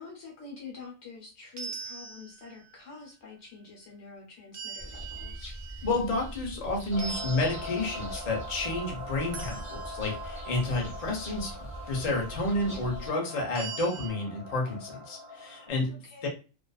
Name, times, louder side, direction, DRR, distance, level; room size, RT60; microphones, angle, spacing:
voice 1, 0.0-5.6 15.9-16.3, left 4 dB, 60° left, -1 dB, 1.2 m, -47 dB
sound 1, 1.6-2.7 4.5-6.6 7.0-8.2 9.3-10.4 13.5-14.1, right 6 dB, 55° right, 0.5 m, -42 dB
sound 2, 4.8-13.1, equal, 5° right, 1.1 m, -42 dB
voice 2, 5.8-11.5 11.9-16.3, left 2 dB, 40° left, -1 dB, 0.6 m, -30 dB
sound 3, 6.9-15.7, left 1 dB, 15° left, 1.0 m, -42 dB
2.4 x 2.4 x 2.3 m, 0.34 s
omnidirectional pair, 1.3 m